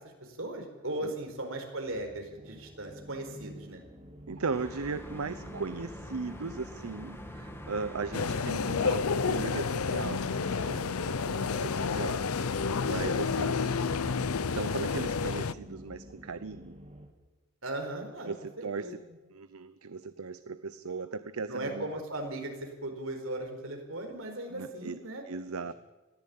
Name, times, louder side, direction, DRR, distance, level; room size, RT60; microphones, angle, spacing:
voice 1, 0.2-3.8 17.6-18.9 21.5-25.2, right 1 dB, 70° right, 4 dB, 4.6 m, -38 dB
sound 1, 1.8-17.1, equal, 30° right, 2.8 m, -48 dB
voice 2, 4.3-13.6 14.5-16.7 18.3-19.0 19.3-22.0 24.5-25.0 25.3-25.7, right 4 dB, 85° right, 13 dB, 0.7 m, -38 dB
sound 2, 4.5-14.3, left 1 dB, 10° left, 1.7 m, -46 dB
sound 3, 8.1-15.5, left 5 dB, 85° left, 0.7 m, -30 dB
21.0 x 14.5 x 8.7 m, 1.2 s
head